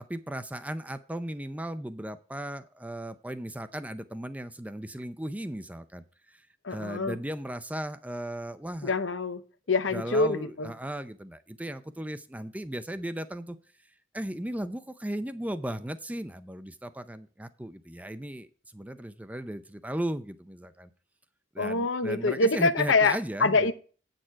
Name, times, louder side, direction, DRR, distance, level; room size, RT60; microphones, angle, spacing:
voice 1, 0.1-8.9 9.9-13.6 14.1-20.9 21.5-23.7, right 1 dB, 10° right, 0.5 m, -36 dB
voice 2, 6.6-7.2 8.8-9.4 9.7-10.7 21.6-23.7, left 3 dB, 75° left, 0.8 m, -25 dB
8.9 x 6.6 x 4.6 m
head